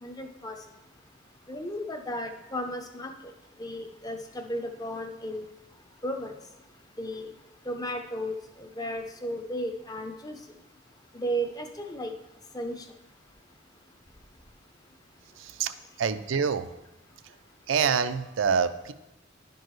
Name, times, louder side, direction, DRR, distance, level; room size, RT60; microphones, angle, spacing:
voice 1, 0.0-0.6 1.5-3.1 3.6-5.4 6.0-6.3 7.0-7.3 7.7-10.4 11.1-12.1 12.5-12.8, equal, 20° left, 5 dB, 0.6 m, -34 dB
voice 2, 15.4-15.7 16.0-16.7 17.7-18.9, right 6 dB, 85° right, 11 dB, 0.4 m, -26 dB
11.0 x 4.5 x 3.1 m, 0.93 s
head